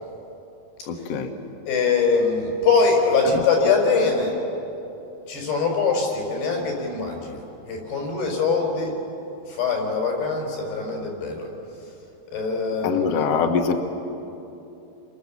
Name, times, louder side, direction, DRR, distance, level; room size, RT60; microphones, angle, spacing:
voice 1, 0.9-1.3 12.8-13.7, left 6 dB, 55° left, 3 dB, 1.9 m, -23 dB
voice 2, 1.7-4.4 5.3-9.0 9.5-11.5 12.3-13.1, left 4 dB, 80° left, 1 dB, 6.7 m, -23 dB
29.5 x 23.0 x 7.3 m, 2.9 s
omnidirectional pair, 4.6 m